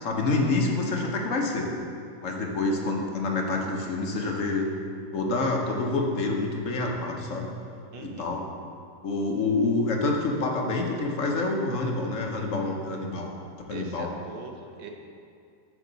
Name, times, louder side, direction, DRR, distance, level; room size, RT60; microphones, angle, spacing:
voice 1, 0.0-1.7 2.2-4.7 5.1-7.5 8.0-8.4 9.0-13.4 13.7-14.1, left 3 dB, 50° left, 1 dB, 1.2 m, -27 dB
voice 2, 7.9-8.3 13.7-14.9, right 4 dB, 90° right, 3 dB, 1.6 m, -41 dB
9.5 x 7.3 x 4.0 m, 2.4 s
omnidirectional pair, 1.9 m